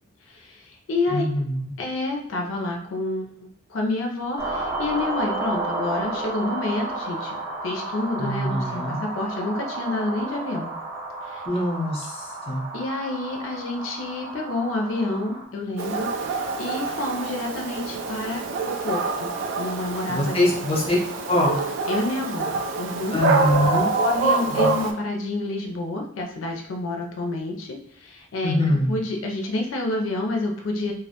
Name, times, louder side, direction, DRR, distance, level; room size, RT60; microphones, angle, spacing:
voice 1, 0.3-1.2 1.8-7.4 7.6-10.7 11.2-11.4 12.7-20.5 21.9-23.2 24.0-30.9, left 2 dB, 75° left, 2 dB, 0.4 m, -29 dB
voice 2, 1.1-1.6 8.2-9.0 11.4-12.6 20.1-21.0 21.3-21.6 23.1-23.9 24.5-24.7 28.4-29.0, left 1 dB, 30° left, -3 dB, 0.6 m, -23 dB
sound 1, 4.4-15.4, right 2 dB, 15° right, 0.5 m, -32 dB
Dog, 15.8-24.9, right 3 dB, 70° right, 0.3 m, -26 dB
2.2 x 2.1 x 2.8 m, 0.71 s
head